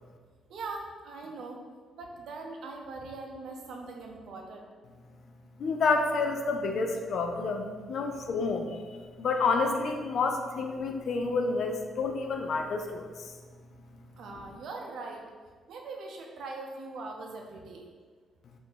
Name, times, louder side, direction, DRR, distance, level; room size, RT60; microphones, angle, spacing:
voice 1, 0.5-1.6 1.9-4.7 14.2-15.3 15.7-17.9, right 3 dB, 70° right, 1 dB, 0.5 m, -41 dB
voice 2, 5.6-8.8 9.2-13.3, left 4 dB, 60° left, 4 dB, 0.4 m, -29 dB
2.8 x 2.5 x 3.7 m, 1.5 s
cardioid pair, 90°, 0 cm